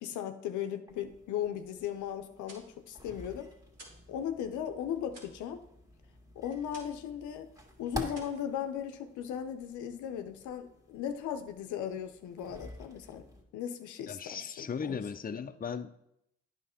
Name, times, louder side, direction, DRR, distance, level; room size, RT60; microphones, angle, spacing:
voice 1, 0.0-3.5 4.1-5.6 6.4-7.5 7.8-13.3 13.5-15.0, left 9 dB, 85° left, 0.6 m, -37 dB
sound 1, 0.9-13.4, equal, 10° right, 1.9 m, -49 dB
sound 2, 2.4-4.1 4.4-7.1 7.4-7.8 8.1-9.2, right 2 dB, 60° right, 2.8 m, -55 dB
voice 2, 14.1-16.0, left 6 dB, 30° left, 0.6 m, -37 dB
9.2 x 5.9 x 4.3 m
supercardioid pair, 45°, 29 cm